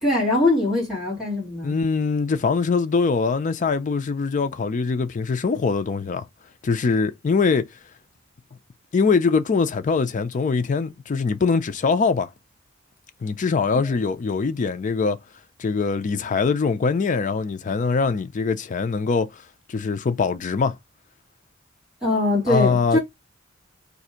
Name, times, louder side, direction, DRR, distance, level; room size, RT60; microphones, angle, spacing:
voice 1, 0.0-1.8 22.0-23.0, left 2 dB, ahead, 1.7 m, -22 dB
voice 2, 1.6-6.3 6.6-7.7 8.9-12.3 13.2-15.2 15.6-19.3 19.7-20.8 22.5-23.0, left 4 dB, 40° left, 0.4 m, -22 dB
2.7 x 2.5 x 4.2 m
head